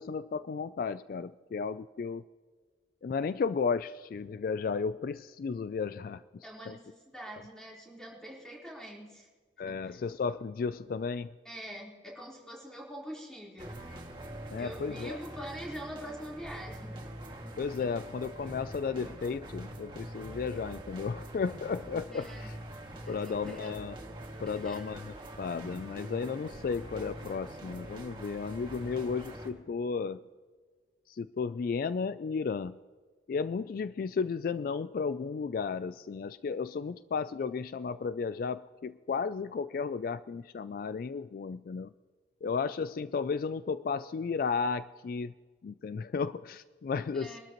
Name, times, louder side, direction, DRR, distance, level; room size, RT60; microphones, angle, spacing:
voice 1, 0.0-2.2 3.0-6.2 6.7-6.8 9.6-11.3 14.5-15.2 17.6-22.5 23.1-23.9 24.4-30.2 31.1-32.8 33.3-41.9 42.4-45.3 45.6-47.4, left 5 dB, 55° left, 15 dB, 0.3 m, -34 dB
voice 2, 6.4-9.3 9.7-10.0 11.4-13.8 14.6-17.0 17.8-17.9 22.1-22.6 23.0-23.7 24.4-24.9 25.7-25.8 28.8-29.1 47.1-47.4, equal, 5° left, -4 dB, 3.9 m, -45 dB
sound 1, 13.6-29.5, right 1 dB, 25° right, 2.0 m, -44 dB
24.0 x 12.5 x 3.0 m, 1.5 s
head